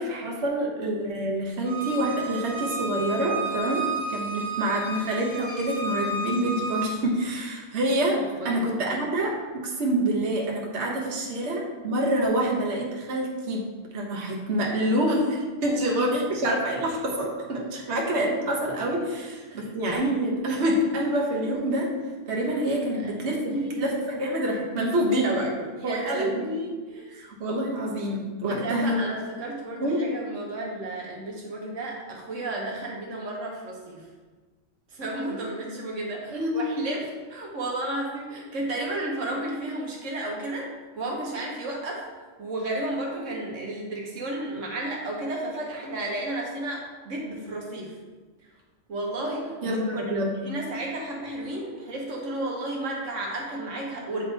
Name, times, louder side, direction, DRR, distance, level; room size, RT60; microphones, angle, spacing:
voice 1, 0.0-13.7 13.9-21.9 22.3-26.4 27.1-29.0 29.8-30.0 36.3-36.8 49.6-50.3, right 1 dB, 60° right, -2 dB, 1.4 m, -27 dB
Bowed string instrument, 1.6-6.9, right 2 dB, 5° left, 1.8 m, -32 dB
voice 2, 8.3-9.0 15.7-15.9 16.2-16.3 17.7-17.8 19.1-19.7 22.3-22.4 22.8-23.8 25.8-27.2 28.5-34.1 34.9-37.0 37.3-42.0 42.4-47.9 48.9-54.3, right 1 dB, 80° right, -2 dB, 1.4 m, -33 dB
8.9 x 3.6 x 4.0 m, 1.3 s
omnidirectional pair, 1.3 m